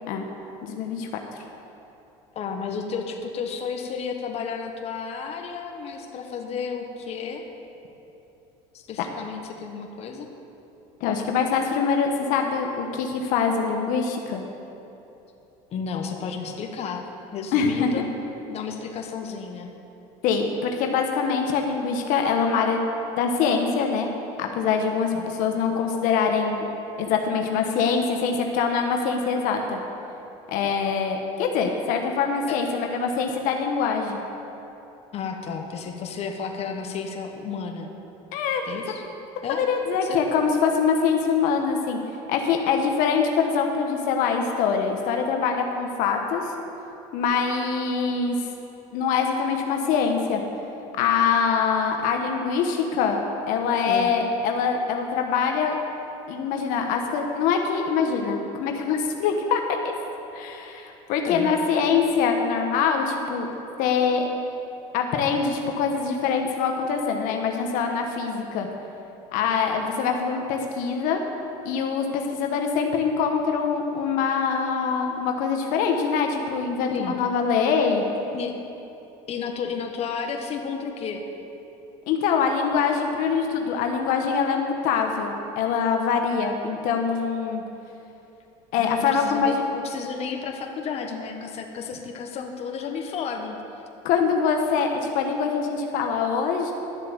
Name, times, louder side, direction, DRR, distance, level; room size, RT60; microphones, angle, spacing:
voice 1, 0.6-1.1 9.0-9.1 11.0-14.4 17.5-17.9 20.2-22.8 23.2-24.1 24.4-26.6 27.0-29.8 30.5-34.2 38.3-38.6 39.5-42.0 42.3-46.5 47.1-48.4 48.9-50.4 51.0-53.2 53.5-55.8 56.3-59.9 60.3-63.5 63.8-64.3 64.9-68.7 69.3-71.2 71.6-78.0 82.1-87.6 88.7-89.6 94.0-96.7, left 6 dB, 70° left, 3 dB, 1.2 m, -24 dB
voice 2, 2.3-7.4 8.7-10.3 15.7-17.1 17.3-18.1 18.5-19.7 25.1-25.3 32.5-32.6 35.1-37.9 38.7-39.0 39.4-39.7 40.0-40.2 53.8-54.1 61.2-61.5 76.9-77.1 78.3-78.5 79.3-81.2 88.8-93.6, left 6 dB, 45° left, 3 dB, 1.2 m, -32 dB
12.0 x 7.6 x 7.0 m, 2.9 s
supercardioid pair, 110°, 15 cm